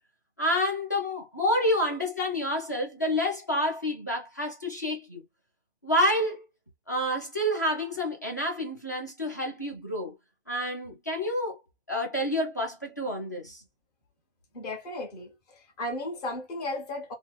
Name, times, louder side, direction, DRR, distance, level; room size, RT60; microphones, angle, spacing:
voice 1, 0.4-5.2 5.8-6.4 6.9-10.1 10.5-11.6 11.9-13.6, left 1 dB, 20° left, 0.3 m, -28 dB
voice 2, 14.5-17.1, left 1 dB, 35° left, 1.3 m, -35 dB
2.8 x 2.0 x 3.0 m
hypercardioid pair, 145°, 34 cm